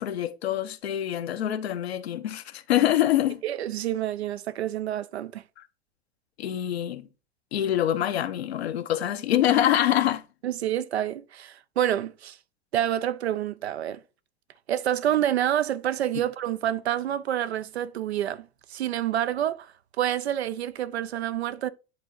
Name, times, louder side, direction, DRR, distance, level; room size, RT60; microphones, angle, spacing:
voice 1, 0.0-3.4 6.4-7.1 7.5-10.2, left 11 dB, 80° left, 0.7 m, -25 dB
voice 2, 3.4-5.4 10.4-12.4 12.7-14.0 14.7-19.7 20.0-21.7, right 11 dB, 85° right, 0.6 m, -28 dB
10.5 x 3.8 x 2.6 m
hypercardioid pair, 90°, 31 cm